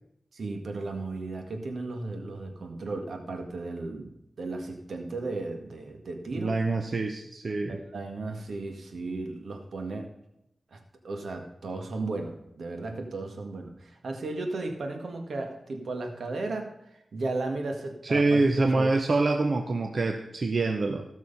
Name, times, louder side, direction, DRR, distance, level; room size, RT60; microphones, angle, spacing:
voice 1, 0.3-6.5 7.7-10.1 10.7-10.8 11.0-18.9, right 2 dB, 80° right, 4 dB, 1.6 m, -35 dB
voice 2, 6.3-7.8 18.0-21.0, right 3 dB, 55° right, 5 dB, 0.8 m, -25 dB
15.0 x 6.2 x 5.5 m, 0.80 s
wide cardioid pair, 70°, 0 cm